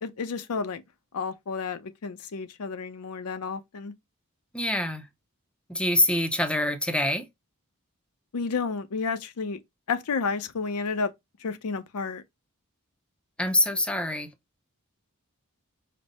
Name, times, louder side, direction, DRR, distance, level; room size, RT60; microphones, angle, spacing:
voice 1, 0.0-0.8 1.1-3.9 8.3-9.6 9.9-11.1 11.4-12.2, left 4 dB, 85° left, 0.5 m, -31 dB
voice 2, 4.5-5.1 5.7-7.3 13.4-14.3, left 1 dB, 5° left, 0.5 m, -25 dB
5.1 x 2.0 x 4.0 m
head